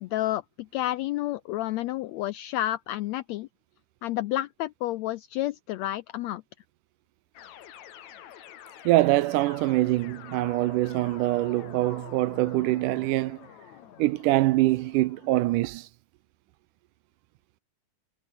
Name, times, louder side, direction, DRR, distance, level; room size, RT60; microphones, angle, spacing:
voice 1, 0.0-3.5 4.0-6.4, left 15 dB, 90° left, 1.5 m, -30 dB
sound 1, 7.3-15.5, left 10 dB, 65° left, 2.8 m, -47 dB
voice 2, 8.9-13.4 14.0-15.9, right 18 dB, 80° right, 2.2 m, -24 dB
omnidirectional pair, 3.7 m